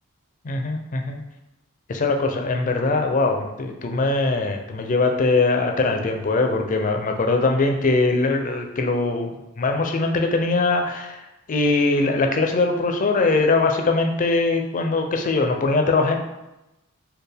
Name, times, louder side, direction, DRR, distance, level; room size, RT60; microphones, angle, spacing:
voice 1, 0.4-1.2 1.9-9.3 9.6-11.2 11.5-16.2, left 3 dB, 40° left, 4 dB, 0.4 m, -21 dB
4.3 x 2.2 x 3.4 m, 0.96 s
head